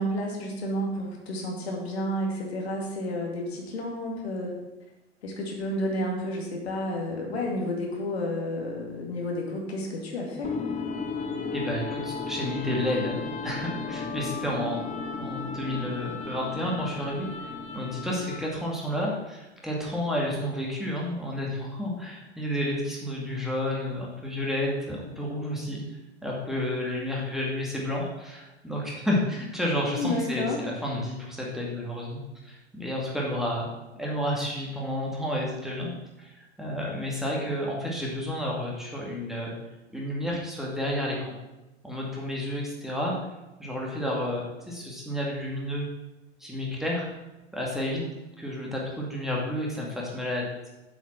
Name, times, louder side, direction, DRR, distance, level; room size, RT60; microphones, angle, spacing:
voice 1, 0.0-4.6 5.2-10.5 29.9-30.6, left 1 dB, 65° left, 0 dB, 2.5 m, -31 dB
sound 1, 10.4-18.6, left 4 dB, 20° left, 1.0 m, -34 dB
voice 2, 11.5-14.9 15.2-25.8 26.2-33.7 34.0-35.9 36.2-39.5 39.9-41.3 41.8-43.1 43.6-45.9 46.4-47.1 47.5-48.1 48.4-50.4, left 1 dB, ahead, -4 dB, 2.2 m, -31 dB
7.9 x 7.2 x 5.9 m, 1.0 s
figure-of-eight pair, 90°, 34 cm